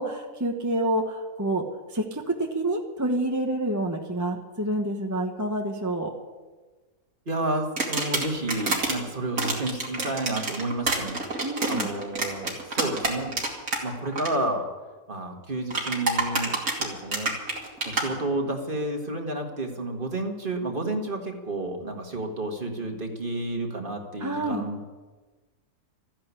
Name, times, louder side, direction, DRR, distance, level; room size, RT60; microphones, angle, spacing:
voice 1, 0.0-6.1 11.4-11.9 24.2-24.7, right 1 dB, 15° right, 2 dB, 1.1 m, -28 dB
voice 2, 7.3-11.4 11.7-13.3 13.8-14.7 15.1-17.4 17.8-24.9, right 2 dB, 35° right, 3 dB, 1.9 m, -31 dB
sound 1, 7.8-8.9 9.4-13.8 14.1-14.3 15.7-18.0, right 3 dB, 80° right, 3.1 m, -27 dB
14.0 x 10.5 x 8.4 m, 1.3 s
omnidirectional pair, 1.5 m